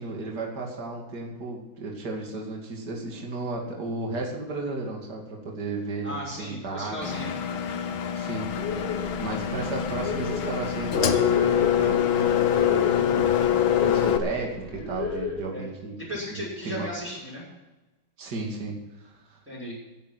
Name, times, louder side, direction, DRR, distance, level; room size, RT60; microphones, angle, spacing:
voice 1, 0.0-7.0 7.3-7.4 8.1-8.5 9.1-15.9 16.3-16.9 18.2-19.4, right 2 dB, 55° right, -1 dB, 3.2 m, -34 dB
voice 2, 6.0-7.3 15.5-15.7 16.0-17.5 19.5-19.7, equal, 5° right, -9 dB, 6.5 m, -35 dB
Engine, 7.0-14.2, left 9 dB, 85° left, 1.9 m, -24 dB
sound 1, 8.5-15.3, left 4 dB, 65° left, 4.1 m, -35 dB
15.0 x 10.5 x 6.1 m, 1.1 s
omnidirectional pair, 2.1 m